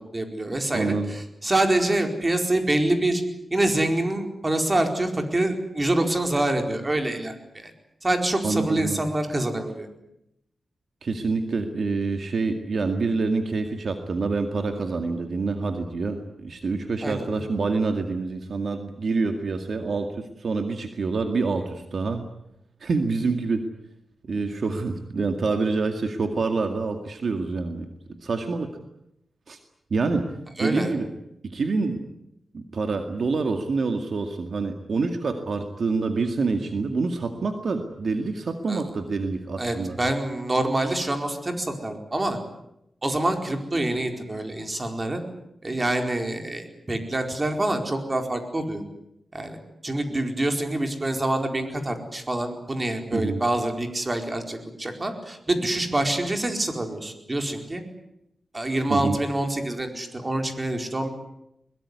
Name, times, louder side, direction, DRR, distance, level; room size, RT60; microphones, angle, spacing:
voice 1, 0.1-3.2 3.5-7.7 8.0-9.9 17.0-17.3 30.6-30.9 38.7-38.8 39.6-42.4 43.0-45.2 45.6-48.8 49.3-57.8 58.5-61.1, right 1 dB, 25° right, 5 dB, 4.6 m, -26 dB
voice 2, 0.7-1.1 8.4-9.0 11.0-22.2 22.8-23.7 24.3-27.9 28.2-28.7 29.5-29.6 29.9-30.3 30.6-31.1 31.4-32.0 32.5-40.0 53.1-53.4 58.9-59.2, right 4 dB, 60° right, 6 dB, 2.1 m, -26 dB
22.0 x 21.5 x 9.8 m, 0.81 s
wide cardioid pair, 95°, 0 cm